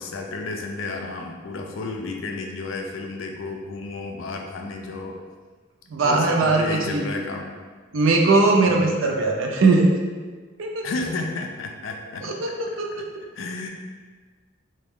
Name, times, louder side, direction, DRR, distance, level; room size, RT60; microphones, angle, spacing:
voice 1, 0.0-5.2 6.0-7.5 8.7-9.0 10.8-12.8 13.4-13.7, left 3 dB, 85° left, 2 dB, 0.4 m, -32 dB
voice 2, 5.9-7.0 7.9-9.9 10.6-10.9 12.2-12.9, right 3 dB, 85° right, 1 dB, 0.5 m, -20 dB
3.5 x 2.2 x 3.5 m, 1.4 s
head